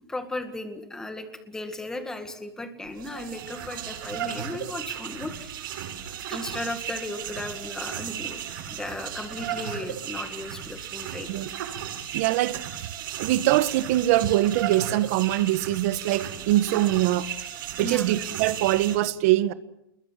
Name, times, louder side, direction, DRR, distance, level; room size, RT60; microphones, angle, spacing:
voice 1, 0.1-5.5 6.3-11.3 17.8-18.2, left 1 dB, 5° left, 2.0 m, -36 dB
sound 1, 2.8-19.0, right 9 dB, 65° right, 7.9 m, -35 dB
voice 2, 12.1-12.6 13.2-17.3 17.8-19.5, right 15 dB, 40° right, 1.3 m, -23 dB
29.5 x 21.5 x 7.7 m
supercardioid pair, 175°, 12 cm